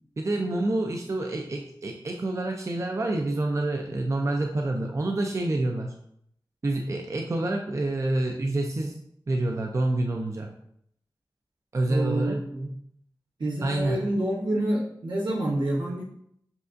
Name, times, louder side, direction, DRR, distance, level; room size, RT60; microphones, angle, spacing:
voice 1, 0.2-5.9 6.6-10.5 11.7-12.4 13.6-14.0, right 2 dB, 40° right, 2 dB, 0.4 m, -27 dB
voice 2, 11.9-12.7 13.4-16.0, right 1 dB, 85° right, -5 dB, 1.3 m, -28 dB
6.8 x 2.4 x 2.5 m, 0.71 s
wide cardioid pair, 65°, 8 cm